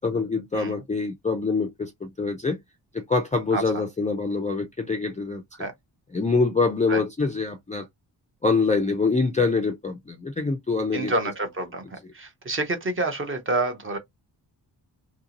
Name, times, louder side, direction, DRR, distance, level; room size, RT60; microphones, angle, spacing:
voice 1, 0.0-2.6 2.9-5.4 6.1-7.9 8.4-11.1, left 4 dB, 20° left, 0.4 m, -25 dB
voice 2, 10.9-11.8 12.1-14.0, right 2 dB, 30° right, 0.7 m, -28 dB
2.9 x 2.6 x 2.8 m
wide cardioid pair, 175°, 43 cm